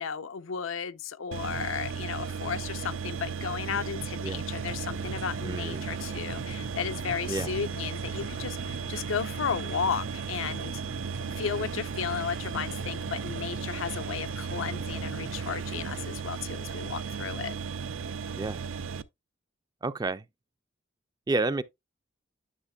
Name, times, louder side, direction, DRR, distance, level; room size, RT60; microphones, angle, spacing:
voice 1, 0.0-10.7 11.4-17.5, left 6 dB, 85° left, 0.6 m, -34 dB
sound 1, 1.3-19.0, right 6 dB, 85° right, 0.5 m, -35 dB
sound 2, 4.5-16.1, right 1 dB, 70° right, 1.5 m, -43 dB
voice 2, 5.4-5.9 7.3-7.5 18.4-18.6 19.8-20.2 21.3-21.6, right 3 dB, 20° right, 0.3 m, -30 dB
10.0 x 6.4 x 2.3 m
head